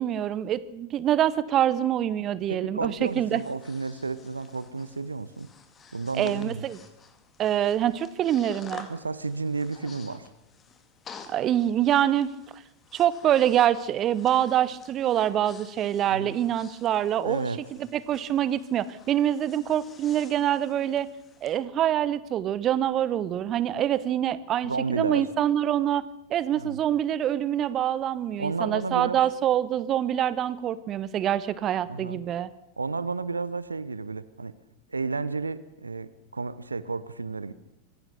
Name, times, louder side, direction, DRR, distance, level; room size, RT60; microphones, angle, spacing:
voice 1, 0.0-3.4 6.1-6.8 7.4-8.9 11.3-12.6 12.9-17.5 17.9-21.1 21.4-26.0 26.3-32.5, right 11 dB, 30° right, 17 dB, 0.9 m, -25 dB
voice 2, 2.5-5.5 5.9-6.6 8.9-10.3 16.1-16.4 17.2-17.6 24.6-25.3 26.5-26.8 28.4-29.2 31.9-32.2 32.8-34.5 34.9-37.5, right 4 dB, 80° right, 17 dB, 0.8 m, -32 dB
Breathing, 2.8-21.5, left 6 dB, 25° left, 2.3 m, -51 dB
25.5 x 16.0 x 6.7 m, 0.87 s
figure-of-eight pair, 90°, 0 cm